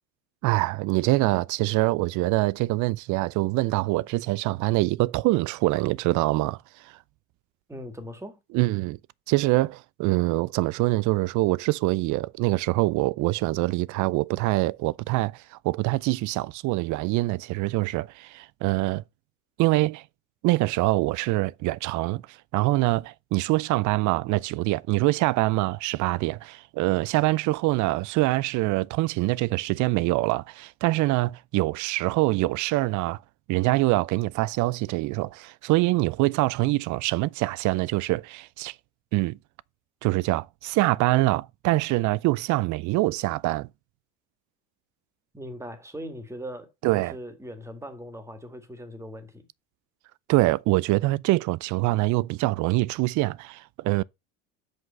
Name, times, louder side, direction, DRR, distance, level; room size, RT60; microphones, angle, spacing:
voice 1, 0.4-6.6 6.8-6.9 8.5-9.0 9.3-19.0 19.6-20.0 20.4-33.2 33.5-38.7 39.1-39.4 40.0-43.7 46.8-47.2 50.3-54.0, right 20 dB, 55° right, 0.4 m, -24 dB
voice 2, 7.7-8.4 45.3-49.5, equal, 10° right, 1.8 m, -40 dB
5.9 x 5.3 x 5.3 m
supercardioid pair, 110°, 36 cm